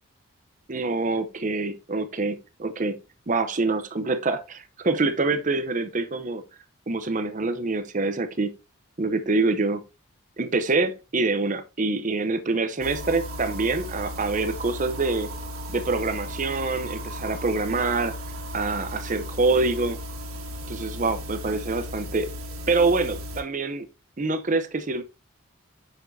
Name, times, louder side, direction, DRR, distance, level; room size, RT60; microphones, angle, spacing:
voice 1, 0.7-3.0 3.3-6.4 6.9-8.5 9.0-9.8 10.4-15.3 15.7-18.1 18.5-20.0 20.7-22.3 22.7-23.9 24.2-25.0, right 3 dB, 35° right, 0.6 m, -25 dB
sound 1, 12.8-23.4, equal, 85° right, 1.7 m, -36 dB
7.3 x 6.0 x 2.6 m
head